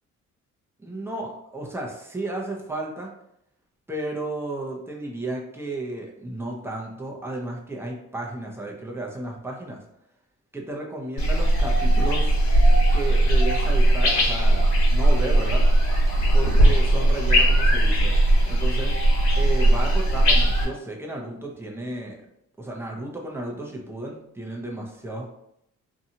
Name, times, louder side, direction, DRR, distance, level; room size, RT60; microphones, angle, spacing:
voice 1, 0.8-3.1 3.9-9.8 10.5-12.4 12.9-15.7 16.3-18.2 18.4-19.0 19.4-22.2 22.6-25.3, right 2 dB, 10° right, -1 dB, 0.7 m, -33 dB
sound 1, 11.2-20.6, right 1 dB, 80° left, 1.2 m, -19 dB
2.8 x 2.3 x 2.8 m, 0.76 s
cardioid pair, 90°, 30 cm